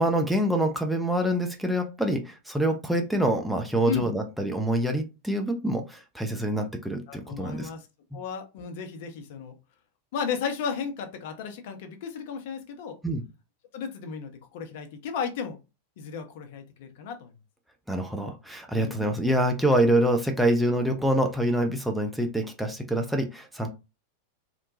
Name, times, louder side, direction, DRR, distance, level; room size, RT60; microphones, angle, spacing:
voice 1, 0.0-7.7 13.0-13.2 17.9-23.7, right 1 dB, 5° right, 3 dB, 0.4 m, -26 dB
voice 2, 7.1-7.8 8.1-9.5 10.1-13.0 13.7-15.6 16.0-17.3 18.8-19.1, left 6 dB, 50° left, 6 dB, 0.6 m, -34 dB
2.9 x 2.1 x 2.6 m, 0.28 s
figure-of-eight pair, 90°, 0 cm